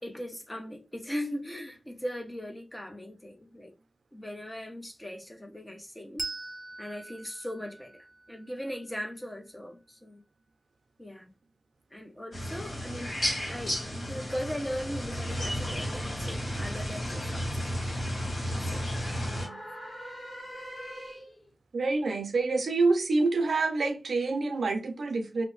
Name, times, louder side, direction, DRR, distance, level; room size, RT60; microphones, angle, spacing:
voice 1, 0.0-3.7 4.1-6.3 6.8-10.2 11.0-11.3 11.9-13.2 13.5-17.6 17.8-18.0 18.6-18.8, equal, 15° left, 0.7 m, -39 dB
Bell, 6.2-9.3, right 3 dB, 20° right, 0.4 m, -42 dB
sound 1, 12.3-19.5, equal, 55° left, 1.4 m, -33 dB
sound 2, 16.4-21.5, equal, 70° left, 1.0 m, -46 dB
voice 2, 19.2-19.6 21.7-25.5, right 3 dB, 90° right, 0.5 m, -27 dB
2.6 x 2.0 x 3.1 m
wide cardioid pair, 85°, 0 cm